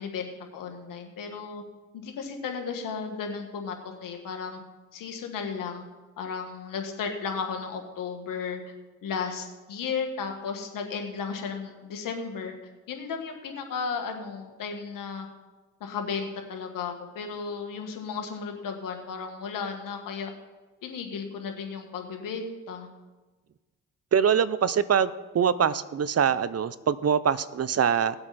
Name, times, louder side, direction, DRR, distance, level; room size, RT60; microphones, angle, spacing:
voice 1, 0.0-1.6 1.9-3.8 4.0-4.6 4.9-5.8 6.2-8.6 9.0-12.5 12.9-15.3 15.8-20.3 20.8-22.9, left 5 dB, 85° left, 4 dB, 1.9 m, -34 dB
voice 2, 24.1-25.1 25.3-28.1, right 7 dB, 50° right, 16 dB, 0.7 m, -23 dB
18.5 x 7.8 x 4.3 m, 1.2 s
supercardioid pair, 55°, 32 cm